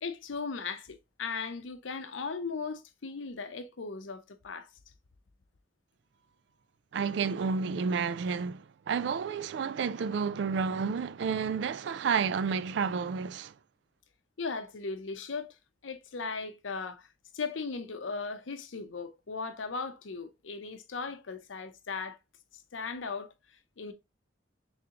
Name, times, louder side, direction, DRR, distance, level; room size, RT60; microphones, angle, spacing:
voice 1, 0.0-4.7 14.4-15.5 15.8-17.1 17.3-22.2 22.7-23.3 23.8-23.9, left 4 dB, 85° left, 0.6 m, -37 dB
voice 2, 6.9-13.5, right 5 dB, 65° right, 0.3 m, -30 dB
3.7 x 3.5 x 2.8 m
head